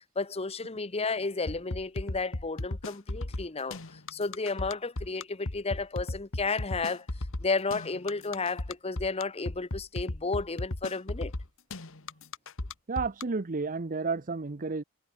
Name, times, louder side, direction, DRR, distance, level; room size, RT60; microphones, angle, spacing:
voice 1, 0.2-7.1 7.4-11.3, left 3 dB, 30° left, 1.0 m, -32 dB
sound 1, 1.5-13.2, left 2 dB, 65° left, 1.7 m, -35 dB
voice 2, 12.9-14.8, right 4 dB, 40° right, 0.7 m, -31 dB
head